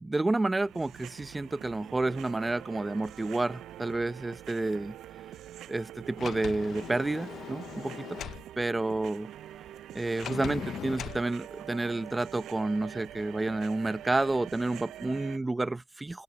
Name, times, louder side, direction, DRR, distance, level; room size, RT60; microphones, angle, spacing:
voice 1, 0.0-5.0 5.7-8.2 8.6-9.3 9.9-16.2, right 2 dB, 20° right, 0.6 m, -30 dB
sound 1, 0.6-15.4, right 12 dB, 80° right, 0.3 m, -45 dB
Sliding door, 6.2-8.4 10.2-11.2, left 9 dB, 65° left, 0.5 m, -39 dB
open air
cardioid pair, 90°, 0 cm